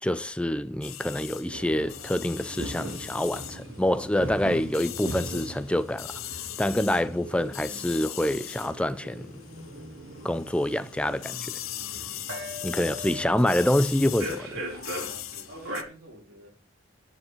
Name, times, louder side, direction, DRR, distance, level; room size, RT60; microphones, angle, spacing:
voice 1, 0.0-6.2 6.6-9.3 10.2-11.6 12.6-14.6, left 1 dB, 5° left, 0.4 m, -26 dB
sound 1, 0.8-9.9 10.2-15.8, left 13 dB, 85° left, 0.8 m, -40 dB
sound 2, 1.5-15.8, equal, 70° right, 4.3 m, -40 dB
voice 2, 15.0-16.5, right 1 dB, 90° right, 4.0 m, -50 dB
9.8 x 7.2 x 5.5 m
head